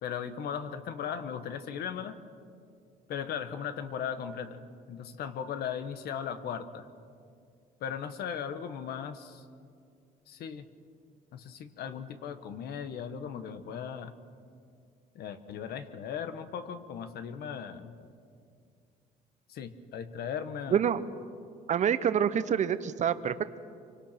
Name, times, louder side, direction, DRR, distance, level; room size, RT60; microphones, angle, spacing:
voice 1, 0.0-2.2 3.1-4.6 4.9-6.9 7.8-9.4 10.3-10.6 11.3-14.1 15.1-17.9 19.5-20.8, left 7 dB, 70° left, 9 dB, 1.5 m, -37 dB
voice 2, 21.7-23.6, right 8 dB, 45° right, 12 dB, 1.0 m, -27 dB
26.0 x 24.0 x 6.0 m, 2.3 s
cardioid pair, 110°, 17 cm